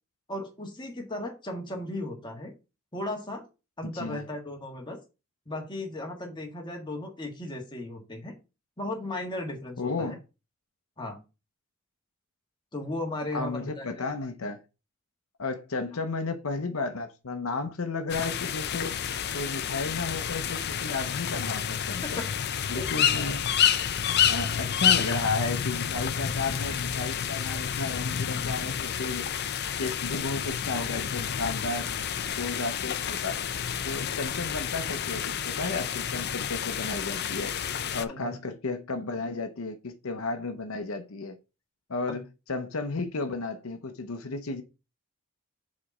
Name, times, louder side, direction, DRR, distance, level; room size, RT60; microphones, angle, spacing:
voice 1, 0.3-2.5 2.9-3.5 3.8-5.0 5.5-8.4 8.8-10.2 11.0-11.2 12.7-14.0 22.2-22.3 22.7-22.9 38.1-38.4 42.1-42.2, left 1 dB, 20° left, 1.6 m, -36 dB
voice 2, 3.8-4.2 9.8-10.2 13.3-14.6 15.4-19.0 19.3-22.2 22.7-23.4 24.2-29.3 29.8-31.9 32.3-33.4 33.8-37.5 37.9-41.4 41.9-42.2 42.5-44.6, left 3 dB, 75° left, 0.8 m, -33 dB
sound 1, 18.1-38.0, left 8 dB, 50° left, 0.5 m, -29 dB
5.0 x 4.2 x 6.0 m
head